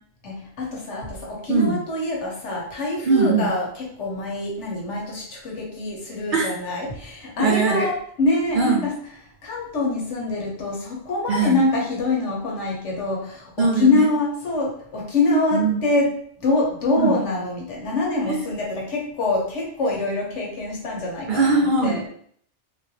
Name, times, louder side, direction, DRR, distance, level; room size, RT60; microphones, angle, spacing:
voice 1, 0.2-8.9 9.4-16.1 16.4-22.0, left 2 dB, 85° left, -2 dB, 1.3 m, -25 dB
voice 2, 3.0-3.5 6.3-6.5 7.4-7.9 8.5-8.8 11.3-11.6 13.6-14.1 15.5-15.8 17.0-17.1 18.3-18.4 21.3-22.1, right 3 dB, 55° right, 1 dB, 0.6 m, -20 dB
3.5 x 2.6 x 2.8 m, 0.62 s
omnidirectional pair, 1.2 m